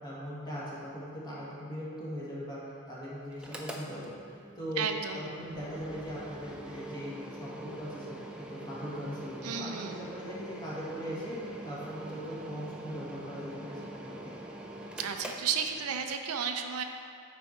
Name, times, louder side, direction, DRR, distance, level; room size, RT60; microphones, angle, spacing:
voice 1, 0.0-2.6 2.9-4.8 5.1-7.1 7.4-14.3, equal, 20° left, -7 dB, 1.6 m, -40 dB
Mechanical fan, 3.3-16.2, right 1 dB, 5° right, 0.4 m, -44 dB
voice 2, 4.8-5.3 9.4-10.0 15.0-16.8, right 7 dB, 75° right, 5 dB, 0.5 m, -33 dB
9.2 x 4.2 x 4.3 m, 2.4 s
head